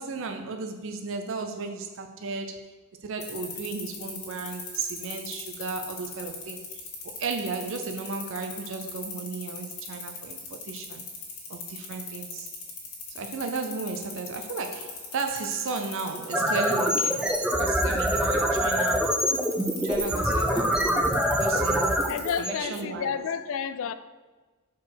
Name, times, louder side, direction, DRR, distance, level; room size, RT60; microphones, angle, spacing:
voice 1, 0.0-2.7 3.0-6.8 7.2-11.0 11.5-12.5 13.1-19.3 19.8-20.9 21.4-22.1 22.4-23.2, right 4 dB, 60° right, 0.5 m, -34 dB
sound 1, 3.2-22.4, left 6 dB, 80° left, 1.8 m, -39 dB
sound 2, 16.1-23.2, equal, 5° right, 0.5 m, -25 dB
voice 2, 22.1-23.9, left 7 dB, 65° left, 0.3 m, -30 dB
4.8 x 4.6 x 6.0 m
head